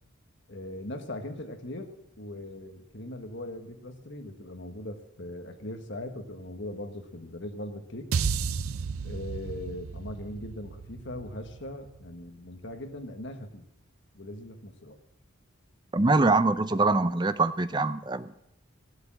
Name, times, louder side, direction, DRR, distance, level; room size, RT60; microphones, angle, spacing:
voice 1, 0.5-8.1 9.0-13.6 14.1-15.0 16.7-16.8, left 1 dB, 55° left, 6 dB, 1.5 m, -40 dB
sound 1, 8.1-12.5, right 5 dB, 85° right, 0.5 m, -33 dB
voice 2, 15.9-18.3, right 3 dB, 20° right, 12 dB, 0.5 m, -24 dB
15.5 x 8.2 x 7.5 m, 0.79 s
head